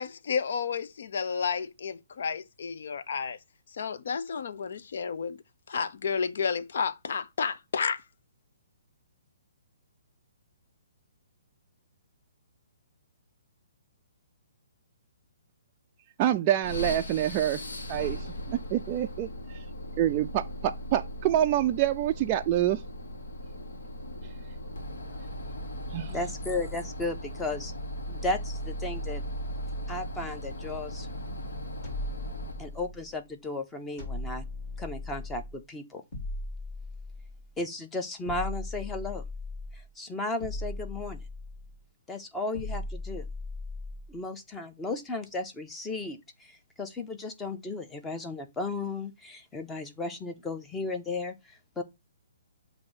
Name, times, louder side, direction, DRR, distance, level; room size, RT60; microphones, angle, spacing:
voice 1, 0.0-3.4 3.7-5.4 5.7-8.0, left 6 dB, 65° left, 0.6 m, -31 dB
voice 2, 16.2-17.6 17.9-19.6 20.0-22.8 25.9-26.1, right 12 dB, 30° right, 0.3 m, -27 dB
sound 1, 16.6-32.8, equal, 85° left, 1.3 m, -38 dB
voice 3, 26.1-27.7 28.1-29.2 29.9-31.1 32.6-34.5 34.8-36.0 37.6-39.2 39.7-41.2 42.1-43.2 44.1-51.8, left 2 dB, 10° left, 0.7 m, -35 dB
sound 2, 31.8-33.2 34.0-35.6 36.1-37.5 38.3-39.9 40.4-41.8 42.5-44.2, left 2 dB, 35° left, 3.0 m, -38 dB
7.5 x 2.7 x 5.6 m
hypercardioid pair, 160°, 0 cm